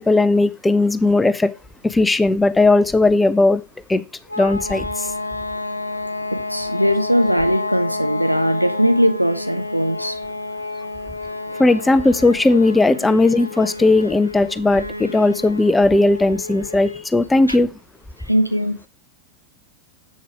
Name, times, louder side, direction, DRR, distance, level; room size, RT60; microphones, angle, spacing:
voice 1, 0.0-1.5 1.8-3.6 3.9-4.0 4.4-5.1 11.6-17.7, left 2 dB, 10° left, 14 dB, 0.6 m, -17 dB
sound 1, 4.3-17.1, left 2 dB, 85° left, 0.7 m, -30 dB
voice 2, 6.3-10.2 18.3-18.7, equal, 90° right, 8 dB, 1.0 m, -19 dB
7.8 x 6.7 x 4.9 m, 0.28 s
figure-of-eight pair, 90°, 0 cm